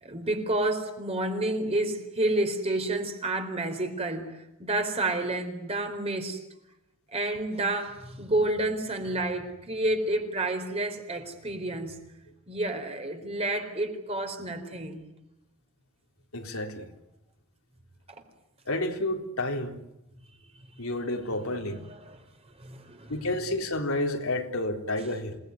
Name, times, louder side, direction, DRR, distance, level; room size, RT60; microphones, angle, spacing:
voice 1, 0.0-6.4 7.1-12.0 12.5-15.0 21.4-22.2 22.6-23.1, right 2 dB, 30° right, 5 dB, 4.2 m, -30 dB
voice 2, 16.3-16.9 18.7-19.8 20.8-21.8 23.1-25.4, left 1 dB, 75° left, 3 dB, 3.6 m, -30 dB
28.0 x 19.5 x 9.5 m, 0.90 s
head